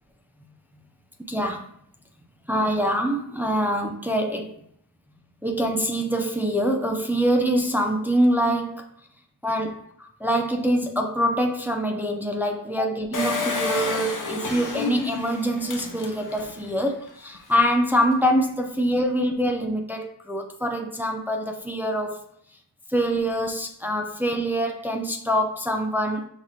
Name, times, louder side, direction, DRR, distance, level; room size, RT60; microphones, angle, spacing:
voice 1, 1.3-1.7 2.5-4.5 5.4-8.8 9.4-9.8 10.2-22.2 22.9-26.3, equal, 5° right, 3 dB, 0.4 m, -24 dB
Engine, 13.1-16.6 17.1-17.2 17.4-17.5, left 4 dB, 45° left, 0.9 m, -30 dB
5.9 x 3.2 x 2.8 m, 0.67 s
wide cardioid pair, 90°, 44 cm